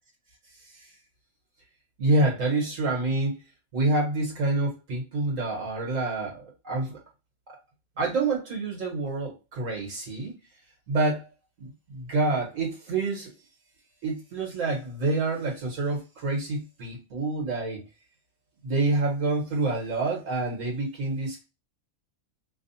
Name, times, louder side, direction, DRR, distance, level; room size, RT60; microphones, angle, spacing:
voice 1, 2.0-3.3 3.7-7.0 7.5-7.6 8.0-10.3 10.9-11.3 11.6-13.3 14.0-17.8 18.6-21.4, right 2 dB, 65° right, -1 dB, 1.7 m, -27 dB
3.1 x 2.3 x 4.1 m, 0.26 s
omnidirectional pair, 1.5 m